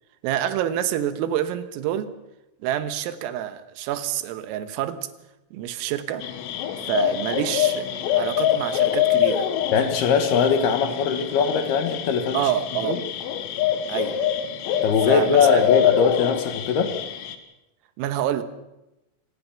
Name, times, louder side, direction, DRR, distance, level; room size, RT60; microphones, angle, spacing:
voice 1, 0.2-2.1 2.6-5.1 5.5-6.3 6.9-7.9 8.1-9.5 12.3-13.0 13.9-14.2 15.0-15.6 18.0-18.4, right 11 dB, 90° right, 11 dB, 4.0 m, -27 dB
sound 1, 6.2-17.4, left 10 dB, 85° left, 4.3 m, -25 dB
voice 2, 9.7-12.4 12.8-13.0 14.8-16.9, left 6 dB, 65° left, 8 dB, 2.9 m, -21 dB
26.0 x 19.5 x 7.2 m, 0.93 s
omnidirectional pair, 5.9 m